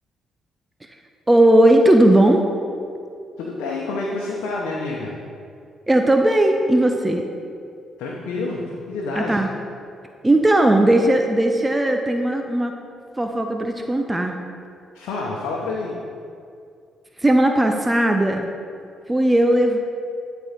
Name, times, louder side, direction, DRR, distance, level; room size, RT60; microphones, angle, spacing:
voice 1, 1.3-2.5 5.9-7.2 9.2-9.5 10.2-12.7 13.2-14.3 17.2-18.5 19.1-19.8, right 1 dB, 15° right, 4 dB, 0.7 m, -17 dB
voice 2, 3.4-5.1 8.0-9.4 14.9-16.0, left 3 dB, 80° left, -2 dB, 0.9 m, -28 dB
10.5 x 4.5 x 5.2 m, 2.4 s
supercardioid pair, 55°, 0 cm